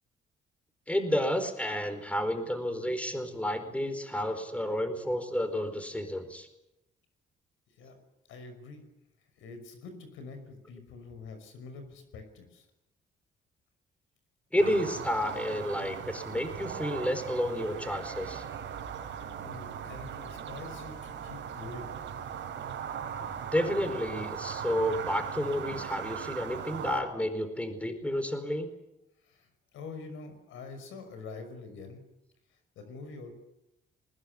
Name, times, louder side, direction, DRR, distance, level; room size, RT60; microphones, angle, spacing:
voice 1, 0.9-6.5 14.5-18.4 23.2-28.7, equal, 5° left, 8 dB, 4.5 m, -31 dB
voice 2, 8.3-8.8 9.4-12.7 16.3-16.4 19.4-21.9 25.7-25.8 29.2-32.0 32.5-33.3, left 4 dB, 85° left, 8 dB, 5.7 m, -45 dB
sound 1, 14.6-27.0, right 8 dB, 70° right, 4.0 m, -39 dB
21.0 x 20.0 x 9.9 m, 0.90 s
cardioid pair, 90°, 20 cm